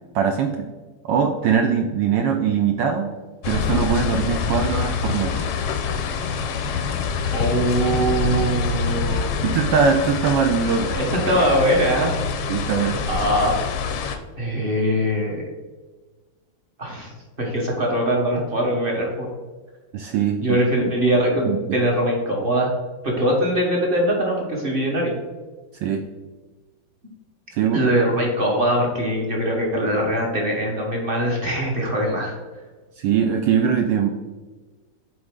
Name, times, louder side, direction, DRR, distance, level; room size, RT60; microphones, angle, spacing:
voice 1, 0.1-0.7 1.0-3.1 3.5-5.5 9.4-11.0 12.5-13.0 19.9-20.6 21.5-21.6 25.8-26.0 27.5-27.8 33.0-34.1, right 7 dB, 75° right, 4 dB, 1.0 m, -21 dB
sound 1, 3.4-14.2, left 5 dB, 85° left, 1.5 m, -25 dB
voice 2, 7.3-9.3 11.0-12.1 13.1-13.5 14.4-15.4 16.8-17.1 17.4-19.3 20.4-22.7 23.0-25.1 27.7-32.4, right 1 dB, 35° right, -1 dB, 1.0 m, -22 dB
7.7 x 4.1 x 3.7 m, 1.3 s
omnidirectional pair, 2.4 m